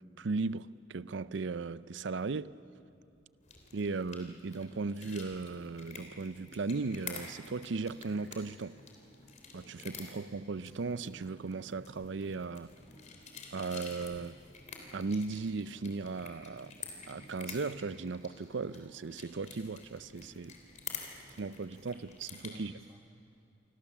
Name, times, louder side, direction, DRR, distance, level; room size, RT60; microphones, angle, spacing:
voice 1, 0.2-2.6 3.7-8.8 9.5-12.7 13.5-14.4 14.9-16.8 17.1-20.6 21.4-22.7, right 4 dB, 70° right, 0.5 m, -37 dB
sound 1, 3.4-22.5, left 5 dB, 40° left, 3.4 m, -49 dB
sound 2, 4.9-21.4, equal, 25° left, 7.6 m, -61 dB
voice 2, 21.2-21.9 22.4-23.4, right 1 dB, 15° right, 1.3 m, -59 dB
28.5 x 24.5 x 7.3 m
head